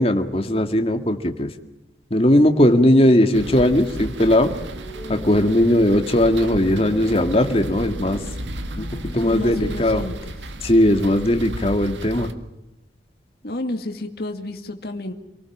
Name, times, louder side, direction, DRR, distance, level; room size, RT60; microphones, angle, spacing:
voice 1, 0.0-1.5 2.1-4.5 5.1-8.2 8.8-8.9 9.1-10.0 10.6-12.3, left 1 dB, 35° left, 6 dB, 2.0 m, -18 dB
sound 1, 2.7-9.7, left 1 dB, 20° right, 7.1 m, -39 dB
sound 2, 3.3-12.3, right 1 dB, 90° right, 2.0 m, -33 dB
voice 2, 9.2-10.3 13.4-15.1, left 1 dB, 60° left, 5 dB, 2.3 m, -31 dB
28.5 x 19.0 x 7.3 m, 0.96 s
head